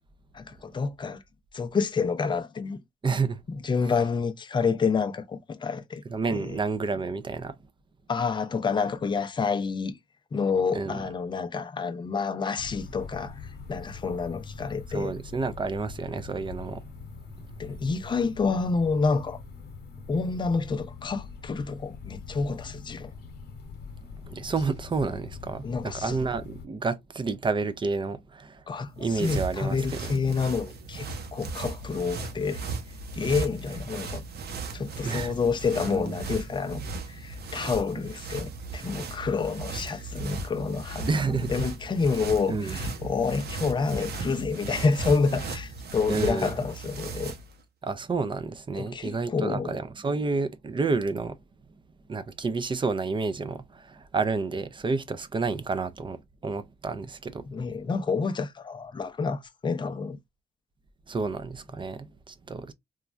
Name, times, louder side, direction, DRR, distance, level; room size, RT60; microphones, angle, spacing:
voice 1, 0.3-1.2 1.5-2.8 3.5-6.0 6.3-6.6 8.1-10.0 10.3-13.4 13.7-15.1 17.6-19.4 20.1-23.1 25.6-26.2 28.7-32.6 33.1-34.2 34.7-47.3 48.8-49.8 57.4-60.2, left 5 dB, 25° left, 0.4 m, -28 dB
voice 2, 3.0-3.4 6.1-7.6 10.7-11.0 14.9-16.8 24.3-28.6 29.0-30.1 35.0-35.4 35.9-36.2 41.1-41.5 42.5-42.8 46.1-46.6 47.8-51.4 52.1-57.5 61.1-62.7, right 4 dB, 30° right, 0.4 m, -30 dB
sound 1, 12.6-26.7, left 4 dB, 75° left, 0.9 m, -43 dB
sound 2, 28.8-47.6, right 3 dB, 70° right, 0.7 m, -36 dB
3.1 x 2.2 x 2.4 m
cardioid pair, 105°, 17 cm